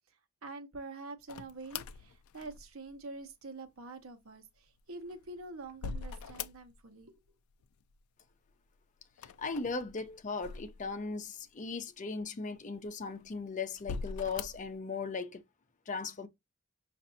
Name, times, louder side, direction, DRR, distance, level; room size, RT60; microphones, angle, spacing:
voice 1, 0.4-7.1, right 3 dB, 75° right, 0.9 m, -46 dB
sound 1, 1.3-2.9 4.8-7.0 7.3-8.0 9.1-11.2 11.8-11.9 12.7-13.3 13.8-14.7, left 5 dB, 90° left, 0.4 m, -43 dB
voice 2, 9.4-15.4 15.9-16.3, left 4 dB, 35° left, 0.6 m, -38 dB
5.3 x 2.6 x 2.6 m
head